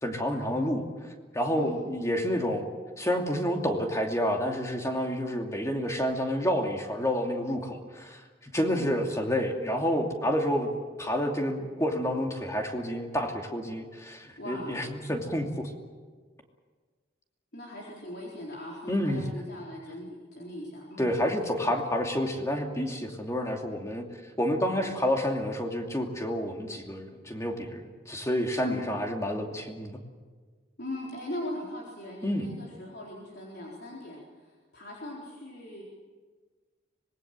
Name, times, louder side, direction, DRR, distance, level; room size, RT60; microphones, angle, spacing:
voice 1, 0.0-0.8 1.3-2.7 3.0-10.7 11.0-15.7 18.9-19.2 21.0-24.0 24.4-30.0 32.2-32.5, equal, 15° left, 2 dB, 2.6 m, -29 dB
voice 2, 8.7-9.0 14.4-14.8 17.5-21.2 28.6-29.0 30.8-35.8, left 1 dB, 60° left, -4 dB, 4.2 m, -40 dB
25.5 x 20.5 x 7.6 m, 1.5 s
head